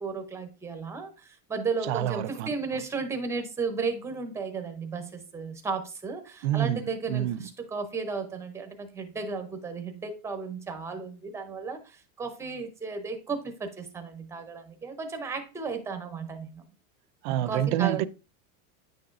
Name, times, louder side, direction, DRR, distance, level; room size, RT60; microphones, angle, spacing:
voice 1, 0.0-16.6 17.4-18.0, right 4 dB, 5° right, 0.6 m, -34 dB
voice 2, 1.9-2.5 6.4-7.5 17.2-18.0, right 13 dB, 55° right, 0.5 m, -27 dB
9.5 x 6.0 x 2.5 m
supercardioid pair, 160°, 41 cm